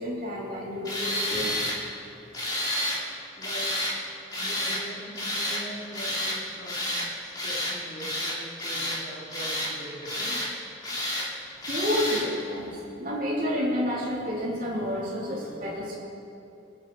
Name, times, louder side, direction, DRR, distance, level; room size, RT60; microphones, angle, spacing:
voice 1, 0.0-1.7 11.7-16.0, left 1 dB, 45° right, -5 dB, 3.8 m, -30 dB
Tools, 0.8-1.8 2.3-3.0 3.4-3.9 4.3-4.8 5.1-5.6 5.9-6.4 6.7-7.1 7.4-7.7 8.0-9.0 9.3-9.7 10.0-10.5 10.8-11.3 11.6-12.2, left 1 dB, 20° left, 3.0 m, -30 dB
voice 2, 3.4-3.8 4.4-10.5, right 1 dB, 35° left, -6 dB, 3.6 m, -42 dB
25.5 x 9.4 x 4.5 m, 2.7 s
head